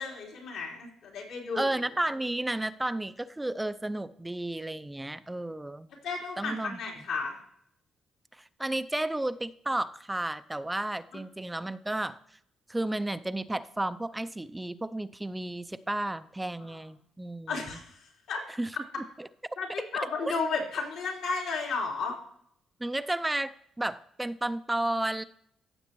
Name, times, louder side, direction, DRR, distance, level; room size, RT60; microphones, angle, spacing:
voice 1, 0.0-1.7 6.0-7.4 16.7-16.8 17.5-18.4 19.6-22.1, left 4 dB, 85° left, -3 dB, 3.7 m, -33 dB
voice 2, 1.5-5.9 6.4-6.8 8.4-12.2 12.7-17.6 18.6-18.7 19.2-19.3 22.8-23.5 23.8-25.2, right 1 dB, 10° right, 13 dB, 0.4 m, -32 dB
15.0 x 7.1 x 3.0 m, 0.68 s
cardioid pair, 90°, 0 cm